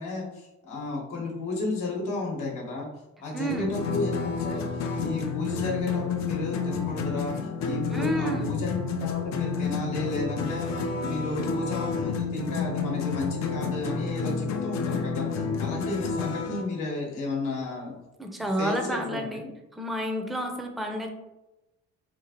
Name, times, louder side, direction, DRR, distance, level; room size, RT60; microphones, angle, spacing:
voice 1, 0.0-2.9 3.2-17.9 18.6-19.4, left 3 dB, 90° left, -2 dB, 0.9 m, -33 dB
voice 2, 3.3-3.7 7.9-8.5 18.2-19.5 19.7-21.1, right 1 dB, ahead, 3 dB, 0.4 m, -30 dB
sound 1, 3.5-16.6, left 5 dB, 65° left, 0.4 m, -30 dB
2.9 x 2.4 x 2.7 m, 0.97 s
cardioid pair, 90°, 30 cm